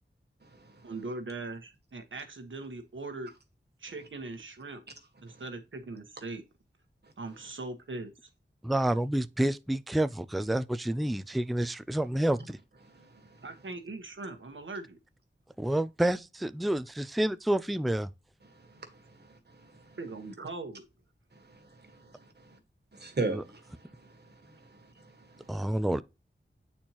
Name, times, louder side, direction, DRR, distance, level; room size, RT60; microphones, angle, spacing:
voice 1, 0.8-3.3 3.8-4.8 5.2-6.4 7.2-8.3 13.4-15.0 20.0-20.8, right 3 dB, 80° right, 1.2 m, -40 dB
voice 2, 8.6-12.6 15.6-18.1 23.3-23.4 25.5-26.0, right 1 dB, ahead, 0.3 m, -29 dB
voice 3, 12.9-13.4 18.5-20.0 21.3-22.6 22.9-25.5, right 3 dB, 55° right, 1.5 m, -40 dB
8.3 x 4.4 x 2.9 m
wide cardioid pair, 80°, 20 cm